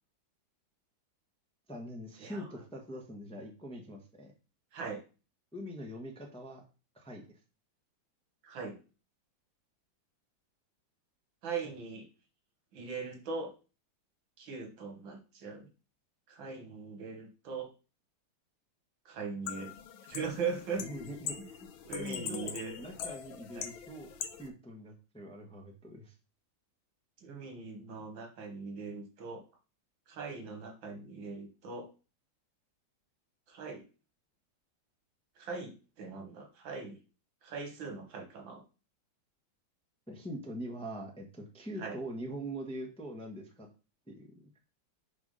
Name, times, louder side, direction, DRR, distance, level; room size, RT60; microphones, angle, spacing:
voice 1, 1.7-4.3 5.5-6.6 6.9-7.4 11.6-11.7 20.8-21.7 21.9-24.1 24.4-26.1 40.1-43.7 44.1-44.5, equal, 5° left, 1 dB, 0.8 m, -43 dB
voice 2, 8.4-8.8 11.4-12.1 12.7-13.5 14.4-15.7 16.3-17.7 19.1-19.7 20.1-20.9 21.9-22.8 23.6-23.7 27.2-29.4 30.1-31.9 33.5-33.8 35.4-37.0 37.4-38.6 41.8-41.9, right 5 dB, 85° right, 4 dB, 2.1 m, -40 dB
sound 1, 19.5-24.5, left 8 dB, 85° left, 1.5 m, -42 dB
6.0 x 3.3 x 5.4 m, 0.33 s
omnidirectional pair, 2.1 m